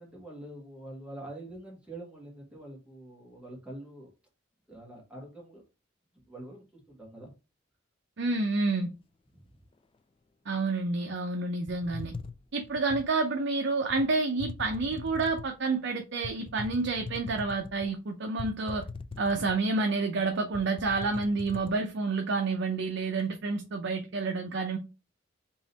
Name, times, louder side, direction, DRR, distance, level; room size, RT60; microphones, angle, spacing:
voice 1, 0.0-4.1 4.7-5.6 6.3-7.3 9.3-9.4, right 1 dB, 5° right, 1.7 m, -45 dB
voice 2, 8.2-8.9 10.5-12.1 12.5-18.9 19.2-24.8, right 3 dB, 65° right, 0.6 m, -29 dB
sound 1, 11.7-13.1 13.9-14.1 14.4-15.6 16.2-17.9 18.4-19.8 20.2-20.3 20.5-21.7, left 4 dB, 30° left, 0.4 m, -41 dB
3.8 x 2.9 x 4.0 m
head